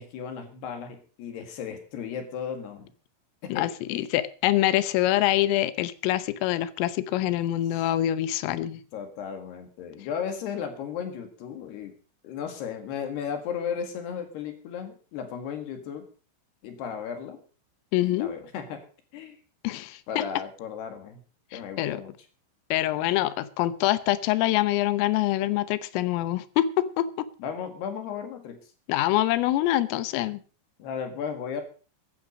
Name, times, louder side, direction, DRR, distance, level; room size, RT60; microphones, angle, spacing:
voice 1, 0.0-2.9 3.4-4.1 8.9-11.9 12.2-16.1 16.6-17.4 18.0-18.9 19.1-19.4 20.1-21.2 21.5-22.2 27.4-28.6 30.8-31.6, left 7 dB, 60° left, 7 dB, 3.5 m, -35 dB
voice 2, 3.5-8.8 17.9-18.3 19.6-20.2 21.5-22.0 22.7-27.3 28.9-30.4, left 14 dB, 80° left, 15 dB, 3.5 m, -25 dB
15.0 x 11.5 x 5.3 m, 0.38 s
omnidirectional pair, 5.9 m